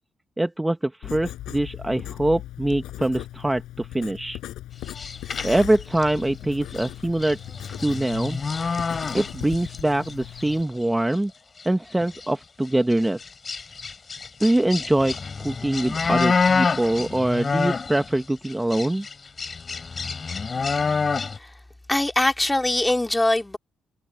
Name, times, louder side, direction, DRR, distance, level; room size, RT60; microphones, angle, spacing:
voice 1, 0.4-4.4 5.4-7.4 7.8-8.4 9.1-11.3 11.6-13.2 14.4-19.1, right 1 dB, 10° right, 1.1 m, -23 dB
Writing, 1.0-10.6, left 14 dB, 85° left, 7.4 m, -38 dB
sound 1, 4.8-6.2 6.7-6.9 7.2-9.8 10.0-10.5 11.1-11.2 11.6-11.7 12.0-12.3 12.9-18.1 18.4-21.4, left 5 dB, 35° left, 3.8 m, -27 dB
voice 2, 21.9-23.6, left 1 dB, 10° left, 2.2 m, -22 dB
cardioid pair, 90°, 0 cm